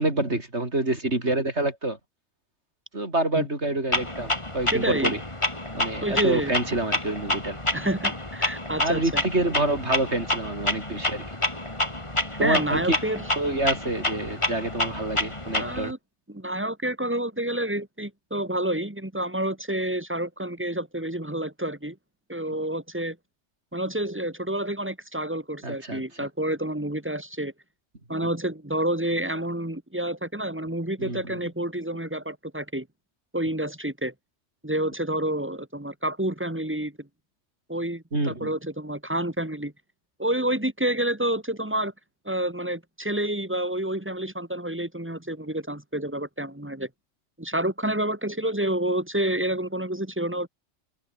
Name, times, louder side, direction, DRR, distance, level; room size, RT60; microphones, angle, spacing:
voice 1, 0.0-2.0 2.9-5.2 5.7-7.6 8.7-11.4 12.4-13.0 13.4-15.9 25.6-26.0 28.2-28.3 31.0-31.4 38.1-38.5, right 2 dB, 60° right, 5.3 m, -27 dB
Clock, 3.9-15.9, left 1 dB, 25° left, 3.2 m, -29 dB
voice 2, 4.7-5.1 6.0-6.5 7.7-9.2 12.4-13.2 15.5-16.0 16.3-22.0 22.3-23.2 23.7-27.5 28.1-32.9 33.3-34.1 34.6-37.1 37.7-39.7 40.2-41.9 42.3-46.9 47.4-50.5, right 1 dB, 10° right, 1.8 m, -29 dB
open air
omnidirectional pair, 1.3 m